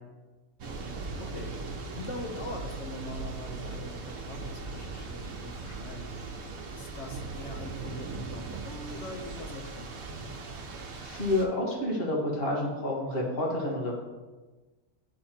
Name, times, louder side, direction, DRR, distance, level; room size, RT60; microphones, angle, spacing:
Thunder / Rain, 0.6-11.5, right 3 dB, 85° right, 1.3 m, -39 dB
voice 1, 1.2-1.5 1.9-6.1 6.7-10.1, left 1 dB, 60° left, 2 dB, 1.2 m, -42 dB
voice 2, 11.0-14.0, left 1 dB, 45° left, -2 dB, 1.6 m, -29 dB
9.9 x 3.5 x 4.3 m, 1.2 s
omnidirectional pair, 1.4 m